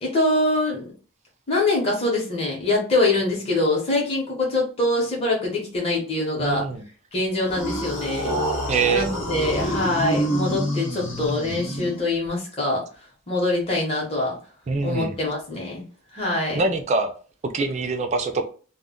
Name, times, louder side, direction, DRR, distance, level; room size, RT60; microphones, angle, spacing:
voice 1, 0.0-0.9 1.5-6.7 7.1-8.4 8.9-12.8 13.3-14.4 14.8-15.8 16.1-16.6, left 2 dB, 25° left, 0.7 m, -24 dB
voice 2, 6.4-6.8 8.7-9.1 14.7-15.2 16.5-17.1 17.4-18.5, right 4 dB, 30° right, 0.3 m, -24 dB
sound 1, 7.5-12.3, equal, 55° left, 0.8 m, -27 dB
2.1 x 2.1 x 3.6 m
head